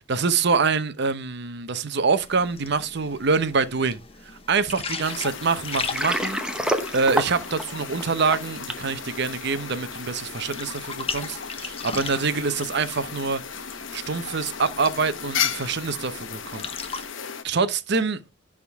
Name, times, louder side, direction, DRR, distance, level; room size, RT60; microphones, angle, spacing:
voice 1, 0.1-4.0 4.3-6.4 6.7-13.4 13.9-17.0 17.4-18.2, right 4 dB, 60° right, 0.8 m, -25 dB
sound 1, 2.2-17.1, left 5 dB, 30° left, 0.9 m, -39 dB
sound 2, 5.0-17.4, left 7 dB, 85° left, 0.9 m, -35 dB
Water, 5.7-8.9, right 1 dB, 5° right, 0.8 m, -28 dB
10.5 x 3.7 x 3.5 m
head